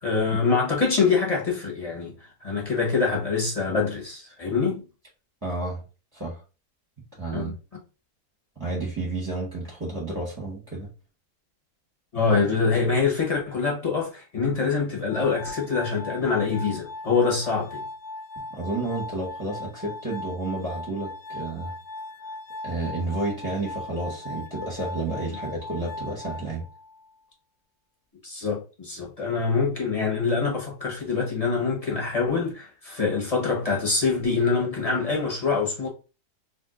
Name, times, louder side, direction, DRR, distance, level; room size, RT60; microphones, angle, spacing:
voice 1, 0.0-2.1 2.4-4.8 7.3-7.5 12.1-17.8 28.2-35.9, left 4 dB, 30° left, 0.7 m, -25 dB
voice 2, 5.4-5.8 6.1-6.4 7.1-7.5 8.6-10.9 18.5-21.7 22.6-26.6, right 2 dB, 15° right, 0.7 m, -31 dB
Glass, 15.1-27.1, left 2 dB, 70° left, 1.0 m, -39 dB
2.7 x 2.4 x 3.6 m
omnidirectional pair, 1.8 m